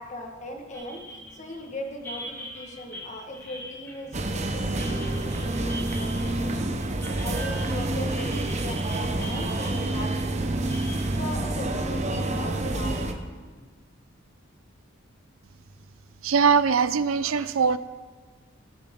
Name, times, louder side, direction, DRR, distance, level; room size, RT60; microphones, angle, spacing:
voice 1, 0.0-6.8 7.2-10.7 11.2-13.2, left 1 dB, 35° left, 3 dB, 1.6 m, -38 dB
sound 1, 0.7-12.5, equal, 10° left, 2.6 m, -42 dB
sound 2, 4.1-13.1, right 2 dB, 35° right, 0.9 m, -28 dB
voice 2, 16.2-17.8, right 6 dB, 80° right, 14 dB, 0.5 m, -21 dB
17.0 x 9.0 x 3.8 m, 1.4 s
head